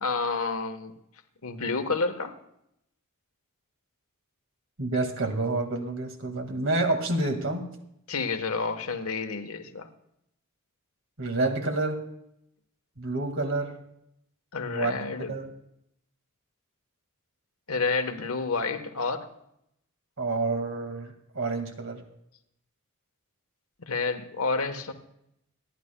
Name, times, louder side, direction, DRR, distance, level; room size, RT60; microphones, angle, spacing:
voice 1, 0.0-0.9 1.4-2.4 8.1-9.9 14.5-15.3 17.7-19.2 23.8-24.9, left 4 dB, 70° left, 7 dB, 1.2 m, -29 dB
voice 2, 4.8-7.7 11.2-12.0 13.0-13.8 14.7-14.9 15.3-15.5 20.2-22.0, right 2 dB, 60° right, 4 dB, 2.0 m, -28 dB
26.5 x 11.0 x 2.2 m, 0.77 s
head